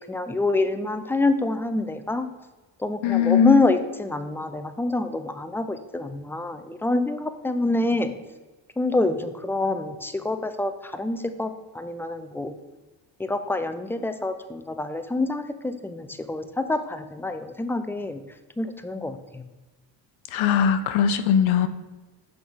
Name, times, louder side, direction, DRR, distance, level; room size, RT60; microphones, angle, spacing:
voice 1, 0.0-2.3 2.8-8.1 8.8-11.5 11.7-12.5 13.2-18.2 18.6-19.4, left 2 dB, 5° left, 9 dB, 0.5 m, -26 dB
voice 2, 3.0-3.7 20.3-21.7, left 8 dB, 70° left, 10 dB, 0.7 m, -20 dB
5.9 x 3.9 x 4.7 m, 1.2 s
supercardioid pair, 60°, 50 cm